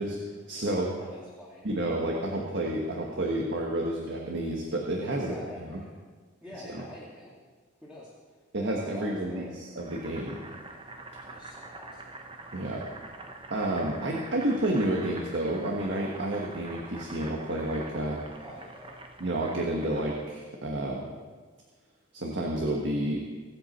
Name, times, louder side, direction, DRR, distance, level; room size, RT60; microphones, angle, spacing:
voice 1, 0.0-0.9 1.6-5.8 6.7-6.8 8.5-10.4 12.5-12.8 13.5-18.2 19.2-21.1 22.1-23.2, right 1 dB, 60° right, -1 dB, 1.6 m, -30 dB
voice 2, 1.0-1.7 5.2-5.9 6.4-7.3 7.8-8.1 8.6-9.6 11.3-12.1 18.4-19.0, left 1 dB, 5° right, -7 dB, 2.2 m, -45 dB
Boiling, 9.8-20.4, right 2 dB, 25° right, 1.0 m, -45 dB
23.5 x 8.3 x 4.4 m, 1.5 s
head